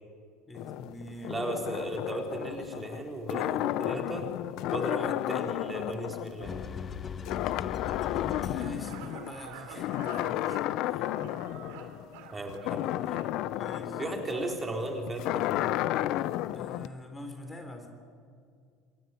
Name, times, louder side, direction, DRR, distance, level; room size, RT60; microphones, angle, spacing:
sound 1, 0.5-7.0 7.3-9.3 9.7-16.9, left 14 dB, 65° left, 0.7 m, -33 dB
voice 1, 0.5-1.3 4.9-5.1 8.4-11.1 12.3-12.5 13.5-14.0 16.5-17.9, left 1 dB, 15° left, 6 dB, 3.4 m, -45 dB
voice 2, 1.3-4.3 4.7-6.6 12.3-13.2 14.0-15.5, right 2 dB, 20° right, 2 dB, 3.9 m, -36 dB
sound 2, 6.4-9.1, left 6 dB, 35° left, 1.2 m, -39 dB
sound 3, 7.8-13.9, right 7 dB, 75° right, 3.0 m, -48 dB
26.0 x 14.0 x 9.9 m, 2.2 s
hypercardioid pair, 85°, 0 cm